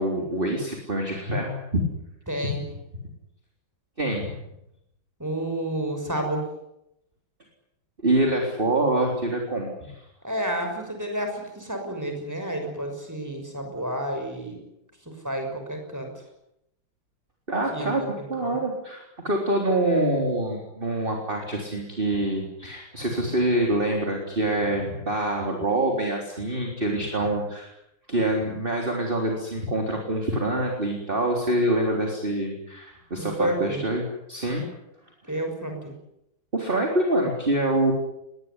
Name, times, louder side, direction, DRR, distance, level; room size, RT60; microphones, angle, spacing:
voice 1, 0.0-1.8 4.0-4.4 8.0-9.9 17.5-18.0 18.3-27.7 28.1-34.7 36.5-37.9, right 1 dB, 25° right, 1 dB, 3.9 m, -25 dB
voice 2, 2.3-2.6 5.2-6.4 10.2-14.6 15.0-16.1 17.7-18.6 33.2-33.8 35.3-35.9, right 1 dB, 10° right, 4 dB, 6.1 m, -30 dB
22.0 x 20.0 x 9.7 m, 0.82 s
omnidirectional pair, 2.2 m